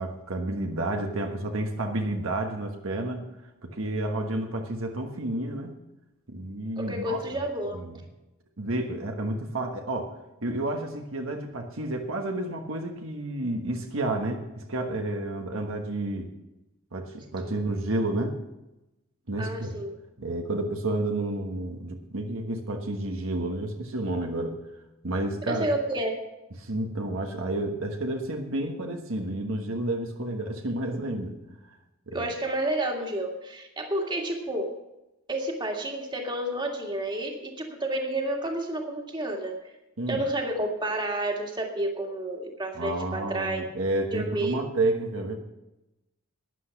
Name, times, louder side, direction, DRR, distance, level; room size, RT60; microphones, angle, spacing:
voice 1, 0.0-3.2 3.6-5.7 6.3-7.2 7.7-7.9 8.6-16.3 16.9-18.4 19.3-19.8 20.2-24.6 25.0-25.7 26.6-31.4 32.1-32.3 40.0-40.2 42.7-45.4, right 2 dB, 70° right, 3 dB, 1.3 m, -30 dB
voice 2, 6.8-7.8 17.4-17.5 19.4-20.0 25.5-26.1 32.1-34.7 35.3-39.6 40.1-43.6 44.1-44.6, right 1 dB, 20° right, 1 dB, 1.9 m, -30 dB
12.5 x 10.0 x 5.9 m, 0.96 s
head